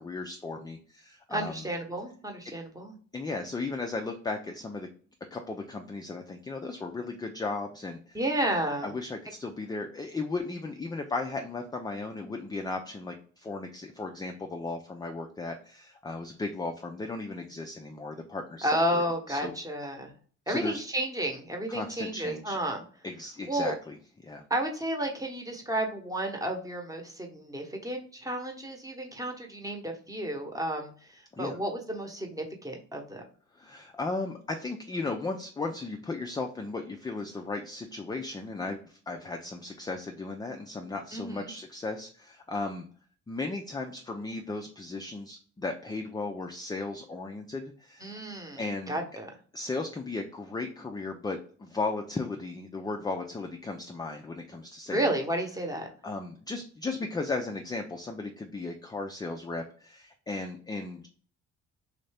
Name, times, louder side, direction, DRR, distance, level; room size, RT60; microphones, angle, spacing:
voice 1, 0.0-1.7 3.1-4.9 5.3-8.2 8.8-19.0 19.3-19.5 20.5-20.8 21.7-22.6 23.0-24.4 31.3-31.6 33.5-42.9 43.3-48.2 48.6-49.0 49.5-55.1 56.0-61.1, left 3 dB, 15° left, 4 dB, 0.4 m, -36 dB
voice 2, 1.3-2.9 8.1-8.9 18.6-20.1 20.5-22.8 23.5-23.7 24.5-33.2 41.1-41.5 48.0-48.6 48.9-49.3 54.9-55.9, right 1 dB, 10° right, 3 dB, 0.9 m, -32 dB
3.2 x 2.6 x 3.3 m, 0.43 s
cardioid pair, 90°, 30 cm